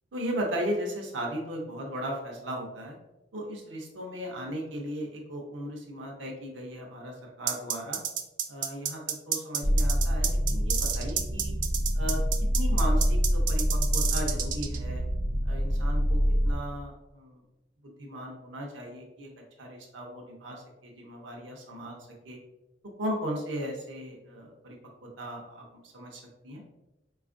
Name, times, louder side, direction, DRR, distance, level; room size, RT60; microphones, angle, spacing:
voice 1, 0.1-3.0 3.3-8.0 8.5-11.6 11.9-12.2 12.5-15.0 15.4-17.4 17.8-19.3 19.6-22.0 22.2-22.4 23.0-26.6, equal, 85° right, 0 dB, 0.6 m, -36 dB
sound 1, 7.5-14.8, right 8 dB, 45° right, 0.3 m, -30 dB
sound 2, 9.6-16.5, equal, 30° left, 0.5 m, -26 dB
4.2 x 2.4 x 2.5 m, 1.0 s
head